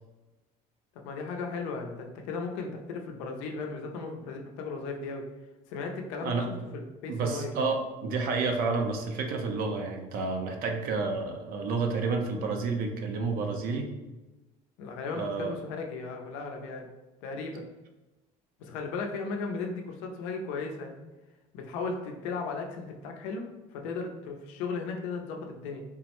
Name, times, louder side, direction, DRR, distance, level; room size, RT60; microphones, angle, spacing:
voice 1, 1.0-5.2 5.7-7.5 14.8-16.9 17.2-17.7 18.6-21.0 21.5-25.8, left 4 dB, 90° left, 2 dB, 0.5 m, -36 dB
voice 2, 7.1-13.9 15.1-15.5, right 4 dB, 65° right, 3 dB, 0.5 m, -30 dB
3.5 x 2.1 x 2.9 m, 1.1 s
supercardioid pair, 95°, 16 cm